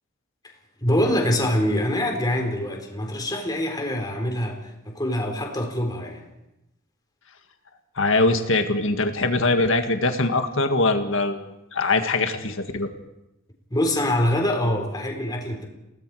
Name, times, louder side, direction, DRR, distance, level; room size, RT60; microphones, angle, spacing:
voice 1, 0.8-6.2 13.7-15.7, left 1 dB, 20° left, 2 dB, 4.1 m, -24 dB
voice 2, 8.0-12.9, left 2 dB, 70° left, 6 dB, 2.0 m, -22 dB
29.5 x 18.5 x 5.0 m, 0.92 s
head